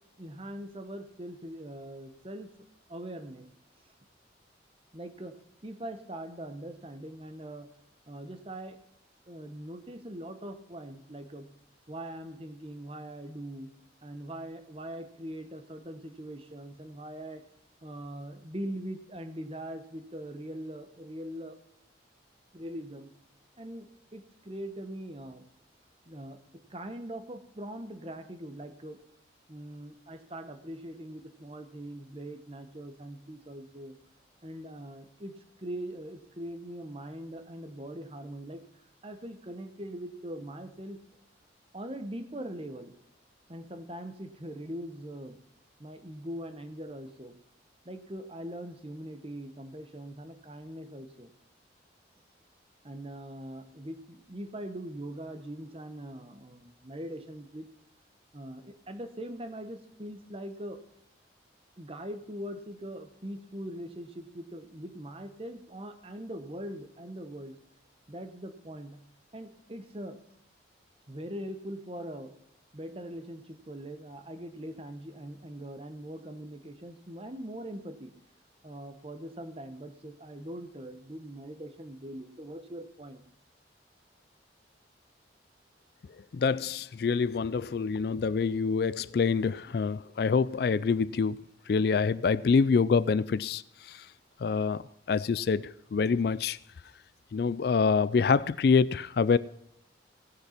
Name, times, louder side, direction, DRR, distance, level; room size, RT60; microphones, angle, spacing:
voice 1, 0.2-2.5 2.9-3.5 3.8-3.9 4.9-5.3 5.6-7.7 8.1-8.8 9.3-11.5 11.9-13.7 14.0-17.4 17.8-21.6 22.5-23.1 23.6-25.4 26.1-29.0 29.5-34.0 34.4-38.6 39.0-41.0 41.7-42.9 43.5-45.4 45.8-47.4 47.8-51.3 52.8-57.7 58.3-60.8 61.8-67.6 68.1-69.0 69.3-70.2 71.1-72.3 72.7-78.1 78.6-83.2, right 1 dB, 30° right, 1.1 m, -41 dB
voice 2, 86.3-94.0 94.4-96.6 97.3-99.4, left 5 dB, 55° left, 0.3 m, -26 dB
17.0 x 6.6 x 5.8 m
head